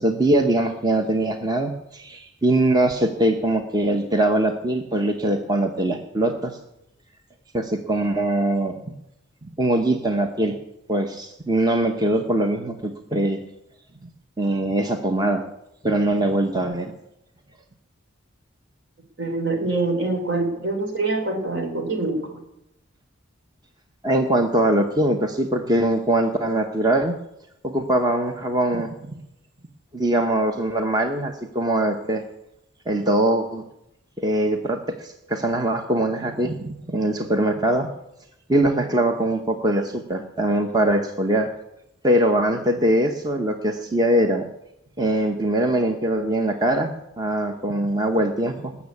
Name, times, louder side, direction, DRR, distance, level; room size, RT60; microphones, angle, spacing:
voice 1, 0.0-6.6 7.5-8.9 9.4-10.5 10.9-13.4 14.4-15.4 15.8-16.9 24.0-27.1 27.6-29.1 29.9-32.2 32.9-33.6 34.2-37.9 38.5-41.5 42.0-44.5 45.0-48.8, right 1 dB, 20° right, 4 dB, 0.9 m, -22 dB
voice 2, 19.2-22.4, right 2 dB, 60° right, 4 dB, 3.7 m, -25 dB
20.0 x 7.1 x 8.5 m, 0.84 s
head